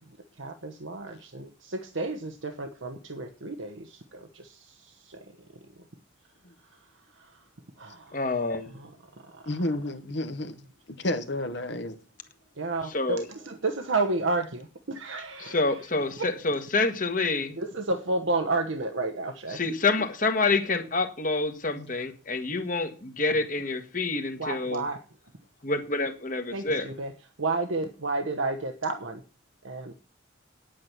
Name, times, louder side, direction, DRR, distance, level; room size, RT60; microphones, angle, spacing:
voice 1, 0.4-5.2 7.8-8.2 9.3-9.4 12.6-13.2 13.5-15.6 16.2-16.3 17.6-19.6 24.4-25.0 26.5-27.1 27.4-29.2 29.6-29.9, right 3 dB, 75° right, 1.1 m, -31 dB
voice 2, 8.1-8.7 12.8-13.3 15.4-17.6 19.5-24.8 25.6-26.9, left 3 dB, 40° left, 1.4 m, -27 dB
voice 3, 9.5-10.5 10.9-12.0 21.8-21.9, left 1 dB, 60° left, 1.1 m, -31 dB
9.5 x 8.6 x 6.0 m
head